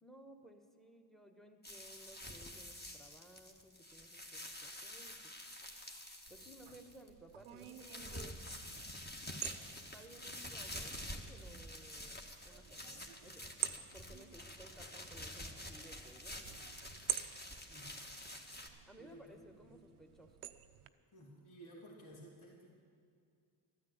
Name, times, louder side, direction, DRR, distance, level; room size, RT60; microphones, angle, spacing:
voice 1, 0.0-5.3 6.3-8.4 9.9-12.2 12.4-16.6 18.9-20.4, right 1 dB, ahead, 6 dB, 1.5 m, -59 dB
sound 1, 1.6-7.1 7.4-18.7, left 1 dB, 20° left, 1.7 m, -48 dB
sound 2, 6.3-20.9, right 12 dB, 85° right, 0.7 m, -48 dB
voice 2, 19.0-19.4 19.7-19.9 21.1-22.7, right 1 dB, 75° left, -2 dB, 2.8 m, -55 dB
13.0 x 9.6 x 8.2 m, 2.3 s
supercardioid pair, 55°, 49 cm